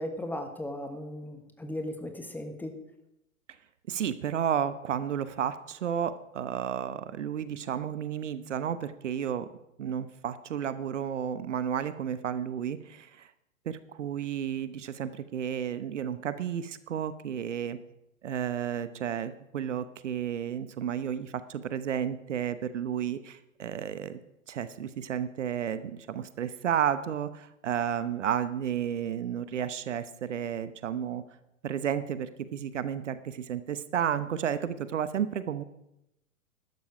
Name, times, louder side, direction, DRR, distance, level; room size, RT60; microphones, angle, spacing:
voice 1, 0.0-2.7, left 1 dB, 5° left, 6 dB, 1.2 m, -36 dB
voice 2, 3.9-9.5 9.8-13.3 13.7-17.8 18.2-24.2 24.5-31.2 31.6-35.6, right 9 dB, 60° right, 13 dB, 0.9 m, -32 dB
13.0 x 12.0 x 4.9 m, 0.86 s
figure-of-eight pair, 105°, 41 cm